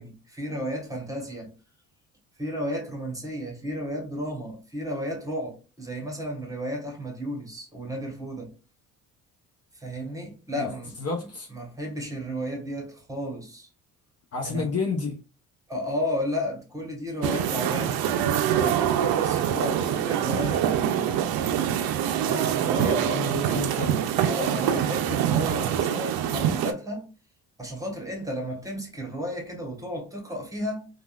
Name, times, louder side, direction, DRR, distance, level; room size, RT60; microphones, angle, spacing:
voice 1, 0.0-1.5 2.4-8.5 9.7-11.0 11.5-13.7 14.4-14.7 15.7-18.0 18.4-21.2 22.2-23.3 24.2-27.1 27.6-30.9, equal, 10° right, 1.2 m, -33 dB
voice 2, 11.0-11.5 14.3-15.2 20.7-20.8 23.0-24.0, left 4 dB, 40° left, 0.8 m, -30 dB
sound 1, 17.2-26.7, right 10 dB, 75° right, 0.5 m, -25 dB
3.4 x 2.4 x 2.3 m
supercardioid pair, 80°, 37 cm